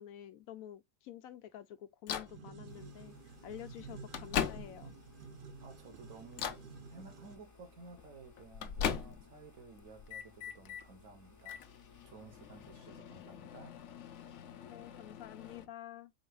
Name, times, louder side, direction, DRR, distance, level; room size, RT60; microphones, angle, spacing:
voice 1, 0.0-4.9 14.6-16.1, left 11 dB, 85° left, 1.1 m, -49 dB
Microwave oven, 2.1-2.4 3.3-3.4 3.9-5.0 5.5-5.9 6.3-6.7 7.9-9.4 9.8-10.9 11.4-15.7, left 8 dB, 65° left, 0.9 m, -40 dB
sound 1, 2.3-7.4, right 4 dB, 50° right, 0.7 m, -51 dB
sound 2, 2.6-12.8, left 4 dB, 20° left, 0.6 m, -62 dB
voice 2, 5.6-6.6 6.9-11.6 12.0-13.7, right 4 dB, 75° right, 1.5 m, -54 dB
4.4 x 3.9 x 2.2 m
omnidirectional pair, 1.4 m